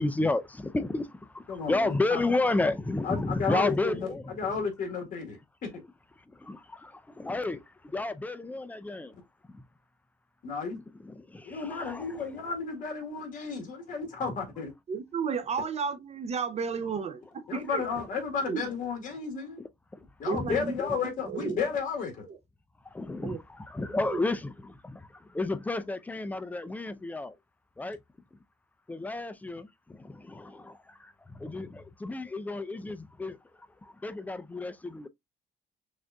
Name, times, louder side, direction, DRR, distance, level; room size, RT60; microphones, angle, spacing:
voice 1, 0.0-4.5 6.2-9.1 9.5-9.6 10.7-12.2 19.6-20.0 20.3-21.0 21.4-21.6 22.8-27.4 27.8-28.0 28.9-33.4 33.8-35.1, left 2 dB, 10° left, 0.4 m, -32 dB
voice 2, 1.5-2.2 3.0-5.7 10.4-10.8 11.4-14.7 17.5-19.6 20.2-22.3, left 5 dB, 50° left, 1.9 m, -33 dB
voice 3, 14.9-17.9 18.5-18.7 20.2-20.8 21.0-21.6 22.3-22.4 23.2-23.4 23.9-24.2, right 5 dB, 40° right, 0.6 m, -33 dB
6.2 x 2.6 x 2.2 m
cardioid pair, 110°, 17 cm